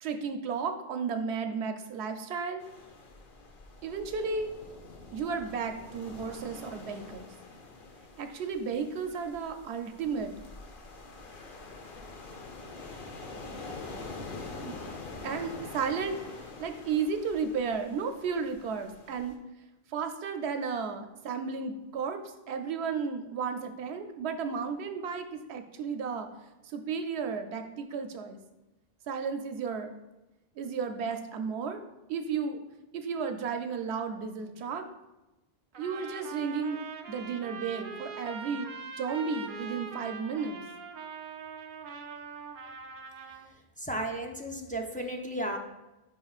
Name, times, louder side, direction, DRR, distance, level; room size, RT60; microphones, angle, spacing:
voice 1, 0.0-2.6 3.8-4.5 5.1-7.3 8.2-10.3 14.6-14.8 15.2-16.2 16.6-19.3 19.9-22.2 22.5-26.3 26.7-28.4 29.1-29.9 30.6-31.8 32.1-32.6 32.9-34.8 35.8-36.8 37.1-38.7 39.0-40.6, right 5 dB, 85° right, 6 dB, 0.8 m, -33 dB
sound 1, 2.6-19.3, left 3 dB, 55° left, 1.0 m, -45 dB
Trumpet, 35.7-43.5, right 5 dB, 60° right, 0.8 m, -42 dB
voice 2, 43.5-45.6, right 1 dB, 10° left, 1 dB, 0.4 m, -35 dB
8.7 x 5.3 x 2.4 m, 1.0 s
omnidirectional pair, 1.1 m